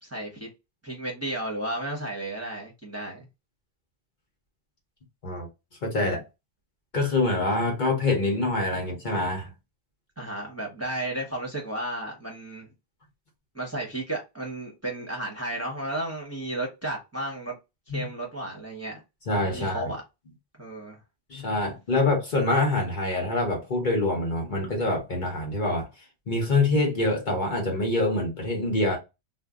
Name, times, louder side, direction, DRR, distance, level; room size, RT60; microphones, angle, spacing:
voice 1, 0.0-0.5 0.8-3.3 6.0-6.2 10.2-12.7 13.5-17.5 17.9-19.0 19.5-20.0 20.6-21.0, right 1 dB, 15° right, 0.9 m, -33 dB
voice 2, 5.8-6.2 6.9-9.5 17.9-18.1 19.3-19.9 21.3-25.9 26.3-29.0, left 2 dB, 50° left, 0.9 m, -25 dB
2.5 x 2.1 x 3.5 m
omnidirectional pair, 1.1 m